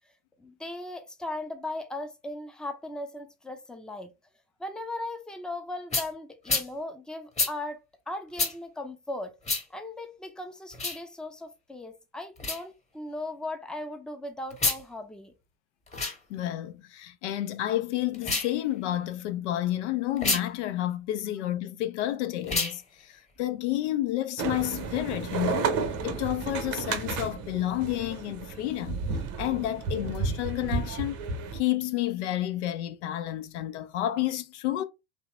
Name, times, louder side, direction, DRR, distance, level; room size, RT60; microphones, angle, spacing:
voice 1, 0.4-4.1 4.6-7.8 8.1-9.3 9.7-15.3, left 2 dB, ahead, 0.5 m, -38 dB
sound 1, 5.9-6.1 6.5-6.7 7.4-7.5 8.4-8.5 9.4-9.6 10.7-11.0 12.4-12.6 14.5-14.8 15.9-16.2 18.1-18.5 20.2-20.4 22.4-22.8, left 3 dB, 20° left, 1.0 m, -28 dB
voice 2, 16.3-29.0 29.4-31.2 31.5-34.8, left 14 dB, 70° left, 0.5 m, -30 dB
sound 2, 24.4-31.6, right 5 dB, 55° right, 0.7 m, -32 dB
2.9 x 2.0 x 2.9 m
hypercardioid pair, 65°, 36 cm